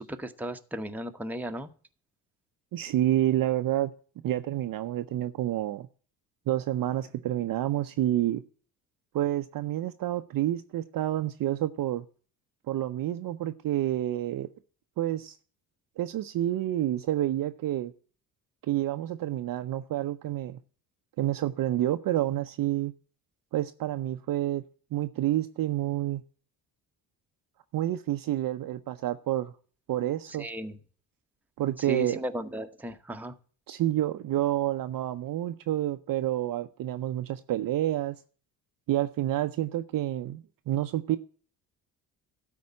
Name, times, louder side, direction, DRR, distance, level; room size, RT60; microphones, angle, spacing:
voice 1, 0.0-1.7 30.4-30.8 31.9-33.3, right 1 dB, 5° right, 0.9 m, -35 dB
voice 2, 2.7-3.9 4.2-5.9 6.5-8.4 9.1-12.1 12.7-14.5 15.0-15.4 16.0-17.9 18.6-20.6 21.2-22.9 23.5-24.6 24.9-26.2 27.7-29.5 29.9-30.5 31.6-32.2 33.7-38.2 38.9-41.2, right 13 dB, 45° right, 0.6 m, -29 dB
12.5 x 4.3 x 8.4 m
hypercardioid pair, 50°, 49 cm